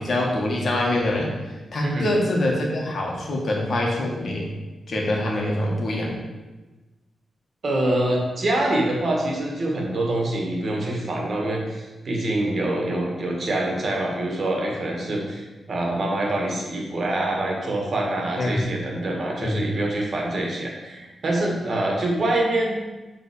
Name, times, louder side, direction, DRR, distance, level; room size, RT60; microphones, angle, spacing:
voice 1, 0.0-1.4 1.7-4.5 4.9-6.1 18.4-18.7 19.4-19.6, left 1 dB, 50° left, -1 dB, 1.9 m, -24 dB
voice 2, 7.6-22.8, right 1 dB, 45° right, -1 dB, 1.9 m, -25 dB
7.7 x 4.0 x 6.9 m, 1.1 s
wide cardioid pair, 120°, 0 cm